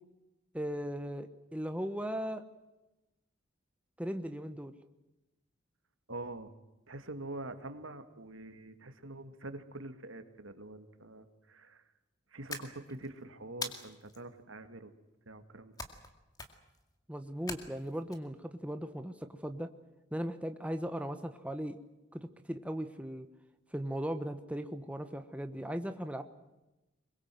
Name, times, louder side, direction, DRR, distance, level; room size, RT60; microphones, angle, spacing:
voice 1, 0.5-2.4 4.0-4.7 17.1-19.7 20.1-21.8 22.1-23.3 23.7-26.2, equal, 5° right, 7 dB, 1.1 m, -38 dB
voice 2, 6.1-6.5 6.9-11.8 12.3-14.9 15.3-15.7, right 2 dB, 85° right, 9 dB, 2.2 m, -45 dB
sound 1, 12.5-13.1 13.6-14.2 15.8-16.1 16.4-16.8 17.5-18.2, left 3 dB, 20° left, 2.2 m, -42 dB
24.0 x 22.0 x 7.7 m, 1.0 s
head